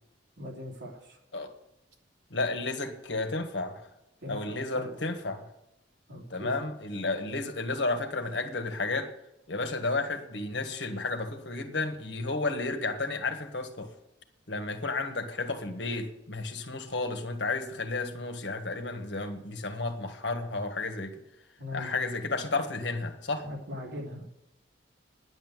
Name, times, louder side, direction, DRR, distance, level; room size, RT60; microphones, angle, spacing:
voice 1, 0.4-1.2 4.2-4.9 6.1-6.6 21.6-21.9 23.4-24.3, left 1 dB, 75° right, 3.2 m, -40 dB
voice 2, 2.3-3.8 4.3-5.4 6.3-9.1 9.5-13.9 14.5-21.2 21.7-23.4, left 3 dB, 70° left, 1.6 m, -32 dB
10.0 x 8.0 x 9.2 m
head